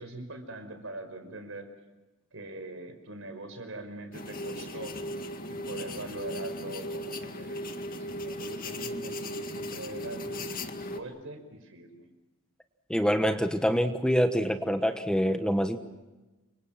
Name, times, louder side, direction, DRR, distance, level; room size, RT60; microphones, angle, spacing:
voice 1, 0.0-1.7 2.3-5.0 5.5-10.4 10.9-12.0, right 2 dB, 65° right, 7 dB, 5.2 m, -42 dB
sound 1, 4.1-11.0, left 1 dB, 40° left, 2.0 m, -37 dB
voice 2, 12.9-15.8, equal, 5° left, 7 dB, 1.2 m, -25 dB
29.5 x 25.5 x 5.9 m, 1.1 s
head